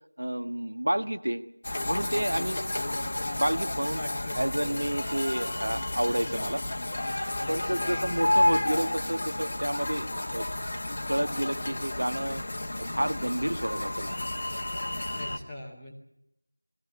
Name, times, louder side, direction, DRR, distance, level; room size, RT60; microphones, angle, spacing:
voice 1, 0.2-1.4 1.8-4.0 4.3-6.6 7.5-10.1 10.3-10.5 11.1-12.4 12.9-14.3, right 1 dB, 55° right, 10 dB, 1.4 m, -30 dB
sound 1, 1.6-15.4, left 1 dB, 20° left, 1.0 m, -31 dB
voice 2, 4.0-4.8 7.4-8.1 15.1-15.9, left 1 dB, 5° left, -6 dB, 0.8 m, -41 dB
21.5 x 15.5 x 9.9 m, 0.82 s
figure-of-eight pair, 180°, 0 cm